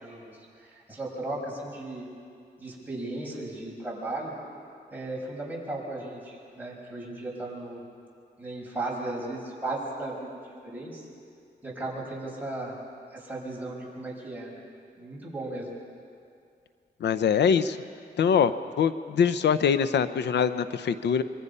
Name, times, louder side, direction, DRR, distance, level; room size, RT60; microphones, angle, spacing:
voice 1, 0.0-2.1 2.6-4.3 4.9-7.8 8.4-11.1 11.6-12.8 13.1-14.6 15.0-15.7, right 2 dB, 10° right, -3 dB, 5.7 m, -36 dB
voice 2, 17.0-17.8 18.2-18.5 18.8-21.2, left 7 dB, 90° left, 12 dB, 0.7 m, -23 dB
26.0 x 23.5 x 5.5 m, 2.4 s
wide cardioid pair, 125°, 17 cm